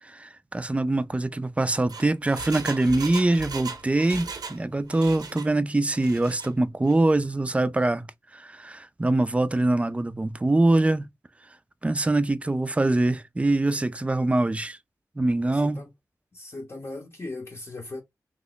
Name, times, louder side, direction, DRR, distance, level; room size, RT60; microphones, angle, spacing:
voice 1, 0.0-8.1 8.3-11.1 11.8-14.8 15.2-15.9, right 2 dB, 20° right, 0.4 m, -24 dB
Engine, 1.6-4.6 4.9-5.5 5.9-6.5 6.8-6.9, right 4 dB, 85° right, 0.7 m, -38 dB
voice 2, 15.4-15.9 16.3-18.0, left 2 dB, 40° left, 0.7 m, -38 dB
3.0 x 2.0 x 3.9 m
wide cardioid pair, 65°, 7 cm